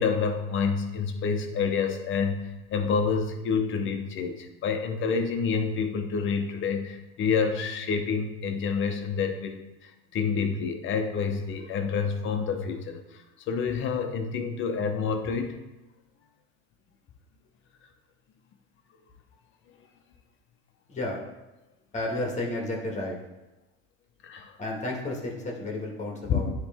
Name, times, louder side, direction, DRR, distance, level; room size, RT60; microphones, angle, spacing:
voice 1, 0.0-15.6 24.2-24.6 26.3-26.5, left 5 dB, 45° left, 5 dB, 0.9 m, -28 dB
voice 2, 20.9-21.2 21.9-23.2 24.6-26.5, left 2 dB, 25° left, -1 dB, 1.7 m, -32 dB
9.7 x 3.3 x 3.6 m, 1.0 s
supercardioid pair, 105°, 29 cm